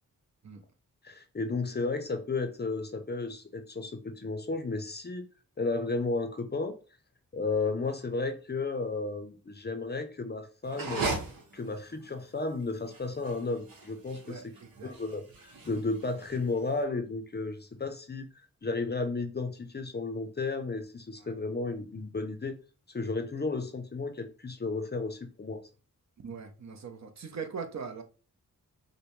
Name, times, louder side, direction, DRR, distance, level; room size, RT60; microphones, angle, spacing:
voice 1, 1.0-5.3 5.6-6.7 7.3-11.1 11.5-14.5 14.8-22.6 22.9-25.6, left 3 dB, 30° left, 0.5 m, -33 dB
sound 1, 10.6-16.8, right 3 dB, 80° right, 1.0 m, -38 dB
voice 2, 26.2-28.0, right 5 dB, 55° right, 0.7 m, -40 dB
5.0 x 2.1 x 3.0 m
wide cardioid pair, 85°, 34 cm